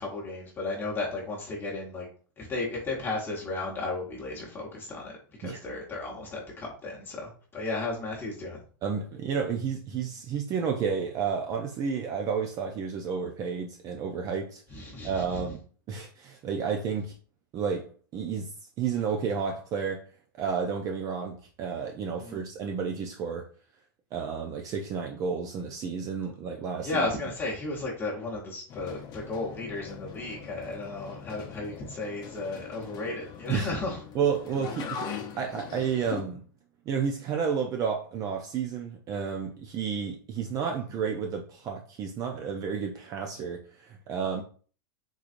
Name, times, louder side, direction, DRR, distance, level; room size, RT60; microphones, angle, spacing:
voice 1, 0.0-2.1 2.4-8.6 14.7-15.5 22.2-22.4 26.8-34.0 40.9-41.0 44.3-44.4, left 2 dB, 20° left, 1.0 m, -34 dB
voice 2, 8.8-15.6 15.9-17.1 17.5-17.9 18.1-20.1 20.4-23.5 24.1-27.0 33.5-33.7 34.1-35.1 35.4-36.4 36.9-44.4, right 6 dB, 30° right, 0.5 m, -31 dB
sound 1, 28.7-36.2, left 7 dB, 35° left, 0.6 m, -41 dB
3.7 x 3.0 x 2.5 m
supercardioid pair, 135°, 11 cm